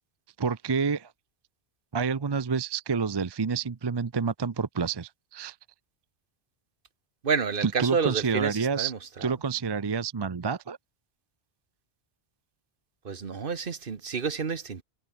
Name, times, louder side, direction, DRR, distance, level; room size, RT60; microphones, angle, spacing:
voice 1, 0.4-1.1 1.9-5.6 7.6-8.9 9.2-10.8, right 5 dB, 30° right, 0.5 m, -28 dB
voice 2, 7.2-9.0 13.0-14.8, right 5 dB, 55° right, 1.3 m, -29 dB
omnidirectional pair, 1.1 m